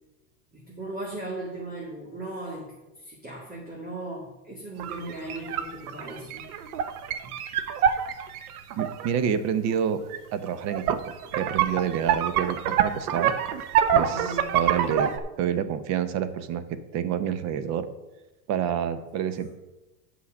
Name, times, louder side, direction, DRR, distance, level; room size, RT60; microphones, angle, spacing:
voice 1, 0.5-6.5 7.2-7.3 14.1-14.5, right 2 dB, 20° right, -3 dB, 2.2 m, -37 dB
sound 1, 4.8-9.1 10.1-10.2 10.5-15.2, right 9 dB, 85° right, 0.9 m, -26 dB
voice 2, 8.7-10.0 10.3-11.0 11.3-13.3 13.9-15.1 15.4-16.6 16.9-17.8 18.5-19.5, right 8 dB, 40° right, 12 dB, 0.8 m, -28 dB
8.6 x 5.7 x 6.4 m, 1.0 s
supercardioid pair, 140°, 43 cm